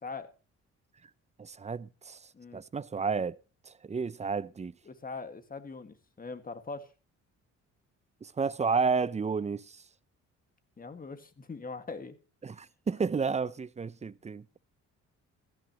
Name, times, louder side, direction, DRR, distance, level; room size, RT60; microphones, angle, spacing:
voice 1, 1.4-2.2 2.5-3.4 3.7-4.7 8.2-9.8 12.4-14.4, right 5 dB, 20° right, 0.6 m, -31 dB
voice 2, 4.9-6.9 10.8-12.2, left 4 dB, 30° left, 1.9 m, -41 dB
17.0 x 14.5 x 3.0 m
cardioid pair, 90°, 30 cm